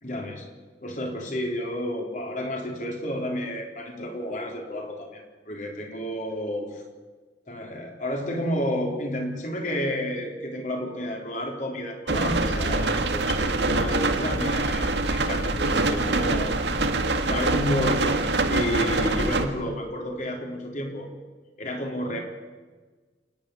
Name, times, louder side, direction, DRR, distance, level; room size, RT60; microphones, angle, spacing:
voice 1, 0.0-0.4 0.8-6.8 7.5-16.6 17.3-21.1 21.6-22.2, equal, 45° left, 1 dB, 4.0 m, -31 dB
sound 1, 12.1-19.5, right 2 dB, 80° right, 1.8 m, -24 dB
27.5 x 9.8 x 9.9 m, 1.4 s
head